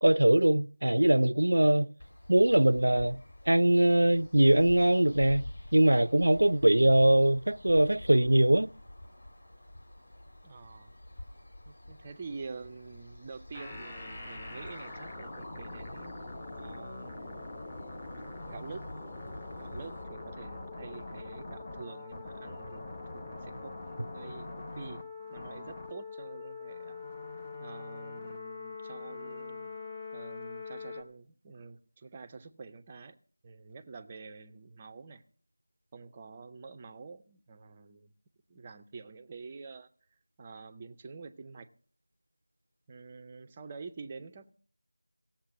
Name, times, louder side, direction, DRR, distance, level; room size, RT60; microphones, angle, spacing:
voice 1, 0.0-1.9 2.3-3.2 3.5-8.7, right 1 dB, 70° right, 0.5 m, -22 dB
sound 1, 2.0-20.0, left 1 dB, 55° left, 3.7 m, -50 dB
voice 2, 10.4-10.9 11.6-16.2 16.6-17.5 18.4-19.0 19.6-23.8 24.1-25.0 25.3-29.7 30.1-33.2 33.4-35.2 35.9-38.1 38.5-39.9 40.4-41.7 42.9-44.5, right 4 dB, 15° right, 0.5 m, -47 dB
sound 2, 13.5-31.0, left 3 dB, 15° left, 0.8 m, -43 dB
17.0 x 7.3 x 6.0 m
figure-of-eight pair, 175°, 0 cm